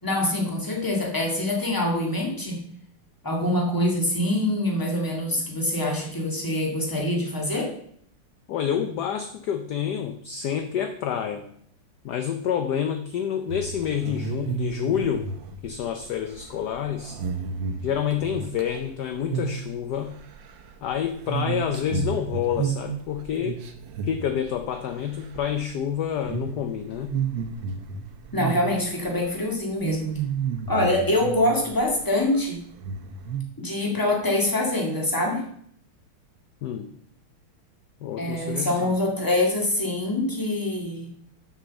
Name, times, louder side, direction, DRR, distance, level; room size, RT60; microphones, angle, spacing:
voice 1, 0.0-2.6 3.2-7.7 28.3-30.1 30.7-32.6 33.6-35.5 38.2-41.1, left 1 dB, 10° left, 0 dB, 1.7 m, -25 dB
voice 2, 8.5-11.5 12.0-15.3 15.6-17.2 17.8-20.2 20.8-23.6 24.0-27.2 36.6-36.9 38.0-38.9, left 9 dB, 70° left, 7 dB, 1.0 m, -28 dB
sound 1, 13.5-18.9 19.2-19.7 20.0-24.9 25.2-25.6 26.2-26.5 27.0-29.0 29.3-29.4 29.8-31.8 32.1-32.2 32.8-33.4, right 6 dB, 65° right, 1.4 m, -31 dB
6.5 x 6.3 x 6.9 m, 0.65 s
omnidirectional pair, 2.4 m